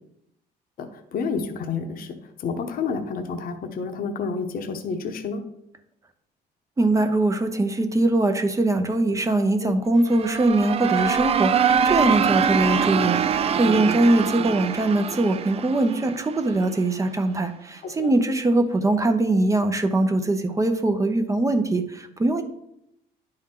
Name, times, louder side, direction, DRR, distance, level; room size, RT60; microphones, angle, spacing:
voice 1, 0.8-5.4 9.6-9.7 13.5-13.8 17.8-18.1, left 5 dB, 60° left, 6 dB, 1.0 m, -30 dB
voice 2, 6.8-22.4, right 2 dB, 20° right, 7 dB, 0.7 m, -22 dB
sound 1, 10.0-16.8, right 7 dB, 35° right, 0.4 m, -24 dB
10.5 x 4.5 x 3.8 m, 0.78 s
cardioid pair, 110°, 17 cm